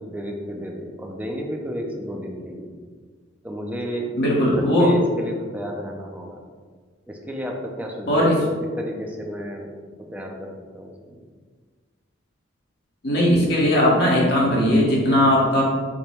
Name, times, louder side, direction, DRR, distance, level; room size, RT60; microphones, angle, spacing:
voice 1, 0.1-2.7 3.4-4.2 4.6-6.4 7.1-11.2, equal, 10° right, 1 dB, 0.5 m, -32 dB
voice 2, 4.2-4.9 8.1-8.4 13.0-15.6, equal, 55° left, -4 dB, 1.3 m, -18 dB
5.1 x 2.2 x 4.4 m, 1.5 s
head